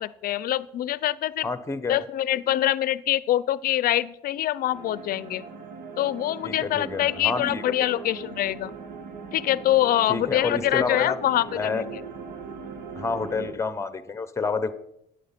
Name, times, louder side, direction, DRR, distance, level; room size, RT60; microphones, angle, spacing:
voice 1, 0.0-1.5 1.9-5.4 6.0-8.7 9.3-12.0, left 13 dB, 60° left, 18 dB, 0.5 m, -25 dB
voice 2, 1.4-2.0 6.4-7.6 10.1-11.2 11.5-11.8 12.9-14.7, left 4 dB, 15° left, 13 dB, 0.9 m, -28 dB
sound 1, 4.7-13.5, right 5 dB, 70° right, 1.5 m, -40 dB
9.7 x 9.4 x 5.9 m, 0.79 s
cardioid pair, 110°, 17 cm